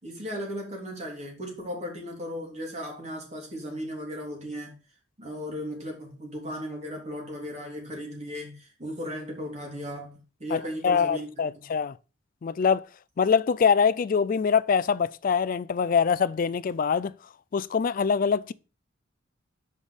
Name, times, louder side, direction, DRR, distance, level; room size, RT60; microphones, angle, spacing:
voice 1, 0.0-4.8 5.2-11.7, equal, 35° right, 3.1 m, -36 dB
voice 2, 10.5-12.0 12.4-12.9 13.2-17.1 17.5-18.5, left 6 dB, 45° left, 0.3 m, -24 dB
5.6 x 5.3 x 6.3 m
head